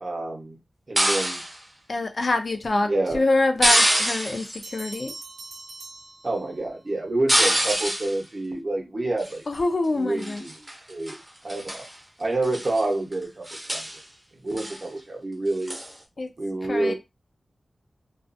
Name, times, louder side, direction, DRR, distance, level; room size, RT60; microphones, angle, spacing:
voice 1, 0.0-0.6 0.9-1.4 2.9-3.2 6.2-9.4 9.9-11.2 11.4-11.9 12.2-13.9 14.3-15.7 16.4-16.9, right 2 dB, 45° right, 0.8 m, -28 dB
sound 1, 1.0-1.6 3.6-4.6 7.3-8.2 9.2-9.6 10.2-10.8 11.1-11.2 11.5-11.9 12.4-12.8 13.1-13.2 13.5-14.0 14.6-14.8 15.7-15.9, right 1 dB, 15° right, 0.7 m, -24 dB
voice 2, 1.9-5.1 9.5-10.4 16.2-16.3 16.7-16.9, left 2 dB, 50° left, 0.4 m, -25 dB
sound 2, 4.6-6.9, right 2 dB, 90° right, 0.8 m, -42 dB
2.3 x 2.3 x 2.5 m
wide cardioid pair, 110°, 0 cm